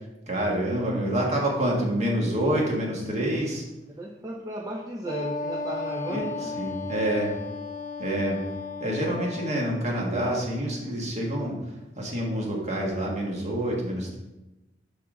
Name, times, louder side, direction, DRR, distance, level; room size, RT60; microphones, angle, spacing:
voice 1, 0.3-3.6 6.1-7.3 8.0-8.4 8.8-11.6 12.0-14.2, right 1 dB, 40° right, -2 dB, 1.8 m, -27 dB
voice 2, 3.9-6.5, right 1 dB, 20° right, 0 dB, 0.6 m, -34 dB
Wind instrument woodwind instrument, 5.0-9.7, left 3 dB, 45° left, 0.7 m, -35 dB
11.5 x 3.9 x 3.9 m, 1.0 s
head